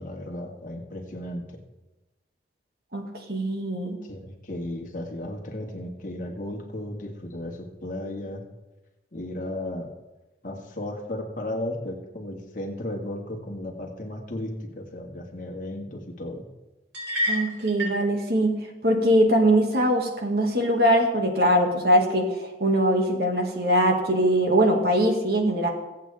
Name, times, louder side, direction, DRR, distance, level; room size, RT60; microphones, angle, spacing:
voice 1, 0.0-1.4 4.0-8.4 9.1-9.9 10.4-16.4, left 1 dB, 45° left, 1 dB, 2.0 m, -34 dB
voice 2, 3.3-4.0 17.3-18.6 18.8-25.7, equal, 60° right, 2 dB, 2.2 m, -22 dB
sound 1, 16.9-18.1, equal, 85° right, 4.3 m, -28 dB
22.5 x 8.3 x 3.6 m, 1.1 s
head